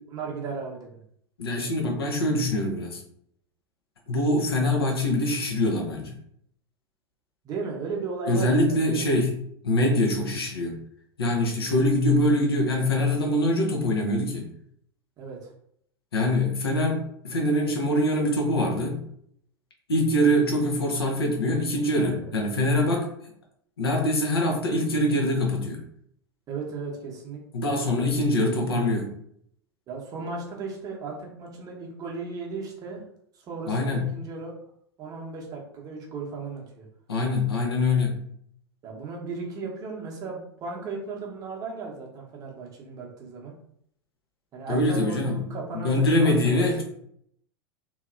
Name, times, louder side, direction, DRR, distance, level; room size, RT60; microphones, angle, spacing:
voice 1, 0.1-0.9 7.4-9.0 15.2-15.5 21.9-22.3 26.5-27.4 27.8-27.9 29.9-33.0 33.3-34.5 35.0-36.8 38.8-43.5 44.5-46.8, right 4 dB, 30° right, -1 dB, 0.8 m, -36 dB
voice 2, 1.4-3.0 4.1-6.2 8.3-9.3 9.6-10.8 11.2-14.5 16.1-19.0 19.9-23.3 23.8-25.8 27.5-29.1 33.7-34.1 37.1-38.2 44.7-45.4 45.7-46.8, left 1 dB, 70° left, 1 dB, 0.8 m, -24 dB
2.9 x 2.8 x 2.4 m, 0.68 s
figure-of-eight pair, 90°, 13 cm